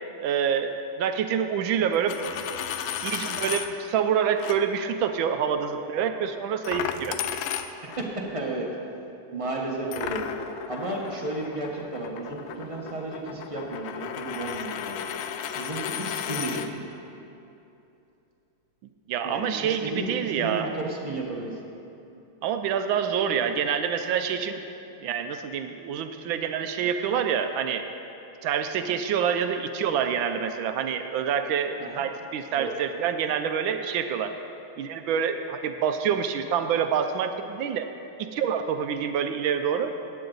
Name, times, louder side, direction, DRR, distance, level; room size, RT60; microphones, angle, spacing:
voice 1, 0.2-2.2 3.0-7.2 19.1-20.7 22.4-24.6 25.0-27.8 28.4-34.3 34.8-37.9 38.3-39.9, right 7 dB, 75° right, 8 dB, 1.3 m, -27 dB
Coin (dropping), 1.9-3.7 4.4-4.6 6.6-8.1 9.9-16.7, left 9 dB, 75° left, 1.3 m, -34 dB
voice 2, 7.8-8.7 9.3-10.2 10.7-15.3 15.5-16.9 19.2-21.6 31.8-32.0 32.5-32.7, right 2 dB, 20° right, -1 dB, 0.9 m, -33 dB
16.0 x 9.1 x 3.9 m, 2.8 s
omnidirectional pair, 2.3 m